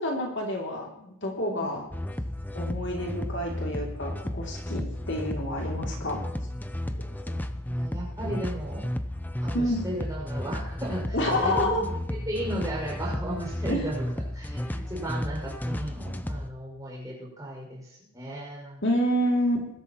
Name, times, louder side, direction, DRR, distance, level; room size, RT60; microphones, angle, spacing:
voice 1, 0.0-1.9 2.5-6.3 7.0-7.4 9.5-9.8 11.1-11.8 13.7-13.9 14.7-14.8 18.8-19.7, equal, 55° left, -1 dB, 2.8 m, -28 dB
sound 1, 1.9-16.5, left 1 dB, 10° left, 0.6 m, -33 dB
voice 2, 7.7-8.8 9.4-14.1 14.3-18.8, right 1 dB, 15° right, -2 dB, 5.9 m, -35 dB
21.0 x 12.5 x 3.0 m, 0.83 s
head